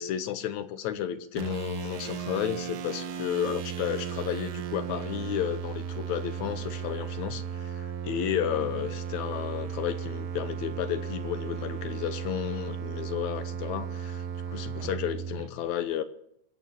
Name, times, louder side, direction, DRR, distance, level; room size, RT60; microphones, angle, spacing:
voice 1, 0.0-16.0, left 10 dB, 70° left, 12 dB, 1.9 m, -32 dB
sound 1, 1.4-15.5, right 7 dB, 80° right, 2.8 m, -35 dB
23.0 x 9.0 x 7.0 m, 0.74 s
omnidirectional pair, 3.9 m